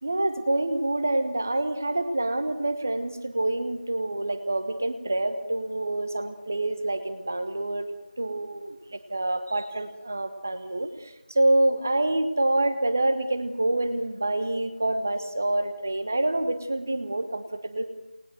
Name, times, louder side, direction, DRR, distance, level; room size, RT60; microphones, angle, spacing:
voice 1, 0.0-7.9 8.2-10.9 11.3-17.9, right 2 dB, 15° right, 11 dB, 1.1 m, -27 dB
29.0 x 20.0 x 7.9 m, 0.98 s
figure-of-eight pair, 175°, 5 cm